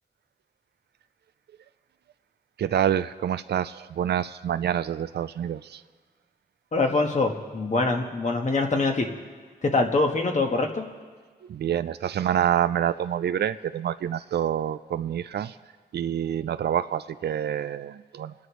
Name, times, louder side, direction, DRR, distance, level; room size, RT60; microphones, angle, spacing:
voice 1, 2.6-5.8 11.4-15.6 15.9-18.3, right 9 dB, 90° right, 12 dB, 0.4 m, -27 dB
voice 2, 6.7-9.1 9.6-10.9, left 3 dB, 45° left, 3 dB, 1.5 m, -24 dB
29.0 x 10.5 x 3.2 m, 1.5 s
wide cardioid pair, 110°, 17 cm